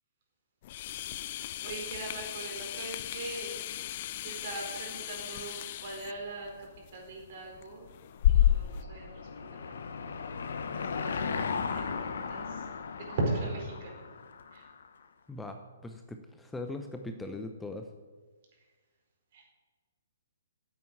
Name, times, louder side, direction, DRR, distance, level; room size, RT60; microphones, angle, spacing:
sound 1, 0.6-8.8, left 12 dB, 45° left, 0.4 m, -32 dB
voice 1, 1.6-3.5 4.2-7.8 8.3-9.8 10.7-12.6 13.1-14.0 14.5-14.6 19.3-19.5, right 2 dB, 50° right, 0 dB, 4.6 m, -39 dB
Car passing by / Engine, 8.0-14.9, left 5 dB, 65° left, 1.0 m, -37 dB
voice 2, 15.3-17.9, left 2 dB, 5° left, 5 dB, 0.7 m, -40 dB
9.4 x 8.5 x 8.6 m, 1.4 s
figure-of-eight pair, 130°, 0 cm